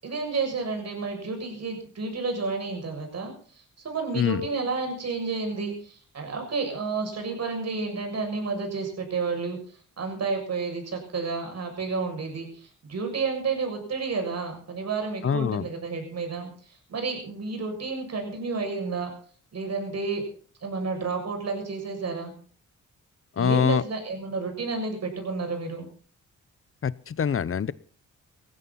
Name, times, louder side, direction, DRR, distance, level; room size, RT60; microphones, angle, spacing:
voice 1, 0.0-9.6 10.0-19.1 19.5-20.2 20.6-22.3 23.4-25.9, right 4 dB, 55° right, 4 dB, 7.1 m, -31 dB
voice 2, 15.2-15.6 23.4-23.8 26.8-27.7, left 7 dB, 45° left, 19 dB, 0.9 m, -24 dB
19.0 x 15.0 x 4.2 m, 0.44 s
cardioid pair, 80°, 30 cm